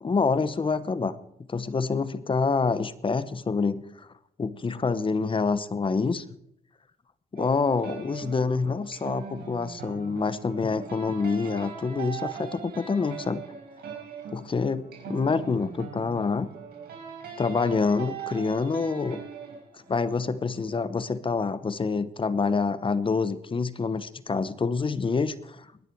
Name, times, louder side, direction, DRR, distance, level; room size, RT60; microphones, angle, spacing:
voice 1, 0.0-1.2 1.5-4.1 4.4-6.2 7.3-13.4 14.3-16.5 17.4-19.2 19.9-25.7, left 4 dB, 30° left, 15 dB, 1.0 m, -27 dB
sound 1, 7.4-20.6, right 7 dB, 80° right, 4.6 m, -41 dB
22.0 x 9.9 x 4.7 m, 0.74 s
cardioid pair, 85°, 16 cm